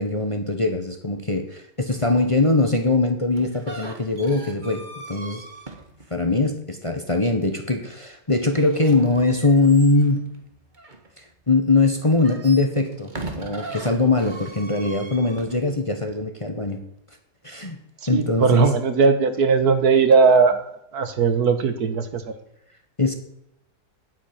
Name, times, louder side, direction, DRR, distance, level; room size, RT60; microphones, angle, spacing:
voice 1, 0.0-5.5 6.1-10.3 11.2-16.8 17.4-17.8 18.1-18.7 23.0-23.1, left 3 dB, 20° left, 5 dB, 1.2 m, -21 dB
sound 1, 3.3-6.6 8.4-11.5 12.0-16.2, right 2 dB, 25° right, 1.8 m, -39 dB
voice 2, 18.1-22.3, right 5 dB, 65° right, 10 dB, 1.7 m, -19 dB
9.7 x 9.6 x 8.9 m, 0.80 s
omnidirectional pair, 1.8 m